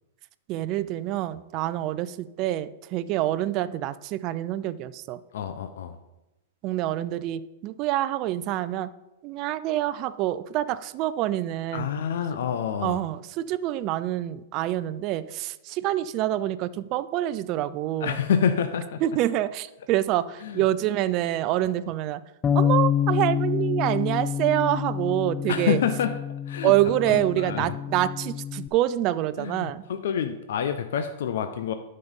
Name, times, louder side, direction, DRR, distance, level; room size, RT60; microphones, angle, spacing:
voice 1, 0.5-5.2 6.6-8.9 9.2-11.9 12.8-18.2 19.0-22.2 22.5-25.8 26.6-29.8, right 13 dB, 40° right, 14 dB, 0.4 m, -26 dB
voice 2, 5.3-6.0 11.7-13.0 18.0-19.0 20.4-20.6 25.5-26.1 26.5-26.7 27.1-27.8 29.4-31.7, left 8 dB, 70° left, 8 dB, 0.7 m, -27 dB
Bass guitar, 22.4-28.7, left 8 dB, 20° left, 0.3 m, -27 dB
12.0 x 5.4 x 3.7 m, 0.96 s
hypercardioid pair, 135°, 0 cm